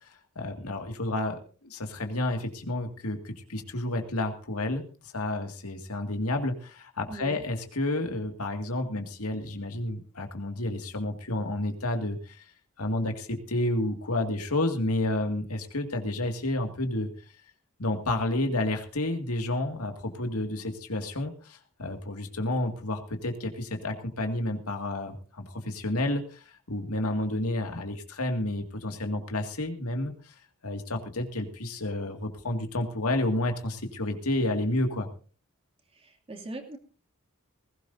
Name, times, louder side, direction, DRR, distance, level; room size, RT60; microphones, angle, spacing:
voice 1, 0.4-4.8 5.1-12.4 12.8-17.1 17.8-30.3 30.6-35.1, left 1 dB, 80° left, 4 dB, 2.1 m, -30 dB
voice 2, 7.1-7.4 35.9-36.8, right 1 dB, 25° right, 2 dB, 2.5 m, -40 dB
20.0 x 17.0 x 2.7 m, 0.39 s
head